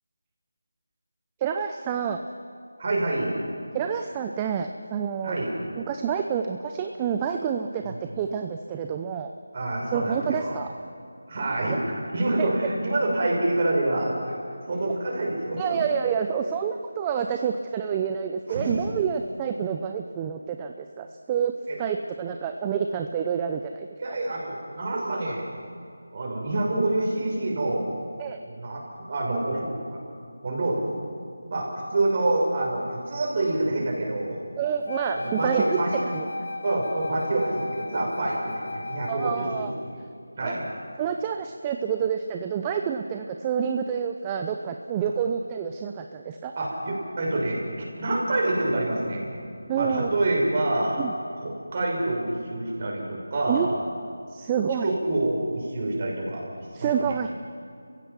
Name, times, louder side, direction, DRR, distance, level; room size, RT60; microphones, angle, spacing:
voice 1, 1.4-2.2 3.7-5.4 5.7-9.3 9.9-10.7 11.6-11.8 12.4-12.5 15.6-21.5 21.8-24.2 28.2-28.4 34.6-35.6 36.1-36.3 39.1-39.7 40.4-40.5 41.0-46.5 49.7-50.1 51.0-51.1 53.5-53.8 54.3-54.9 56.7-57.3, right 7 dB, 15° right, 6 dB, 0.6 m, -28 dB
voice 2, 2.8-3.4 5.2-5.5 9.5-10.5 11.3-11.8 12.1-14.4 14.6-15.8 18.5-18.8 21.7-21.8 24.0-25.5 26.1-28.0 28.4-30.0 30.4-30.9 31.5-34.4 35.1-35.9 36.6-39.7 40.4-40.6 46.6-49.3 49.8-51.0 51.4-53.7 54.8-56.4 56.8-56.9, right 2 dB, 35° right, -2 dB, 6.4 m, -27 dB
Wind instrument woodwind instrument, 34.9-39.8, left 2 dB, 65° left, 1.3 m, -34 dB
30.0 x 16.0 x 6.1 m, 2.5 s
figure-of-eight pair, 165°, 0 cm